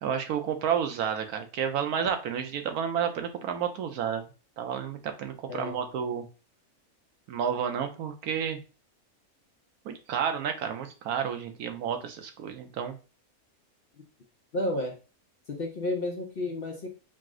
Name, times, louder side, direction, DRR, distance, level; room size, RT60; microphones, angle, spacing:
voice 1, 0.0-4.2 4.6-6.3 7.3-8.6 9.8-13.0, right 8 dB, 85° right, 6 dB, 1.2 m, -31 dB
voice 2, 5.5-5.8 14.5-15.0 15.5-16.9, left 1 dB, 50° left, 2 dB, 0.7 m, -31 dB
5.0 x 2.1 x 3.6 m, 0.33 s
omnidirectional pair, 1.5 m